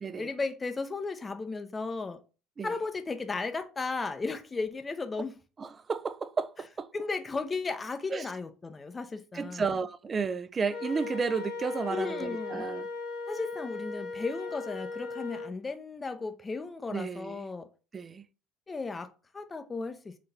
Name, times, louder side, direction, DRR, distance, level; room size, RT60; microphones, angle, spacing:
voice 1, 0.2-2.2 2.6-5.4 6.9-9.7 11.9-12.6 13.3-17.7 18.7-20.2, left 4 dB, 25° left, 0.6 m, -35 dB
voice 2, 5.6-6.9 8.1-8.3 9.3-12.9 16.9-17.5 17.9-18.3, right 5 dB, 30° right, 0.4 m, -32 dB
Wind instrument woodwind instrument, 10.7-15.5, left 3 dB, 75° left, 1.7 m, -38 dB
4.0 x 3.2 x 4.0 m
supercardioid pair, 85°, 0 cm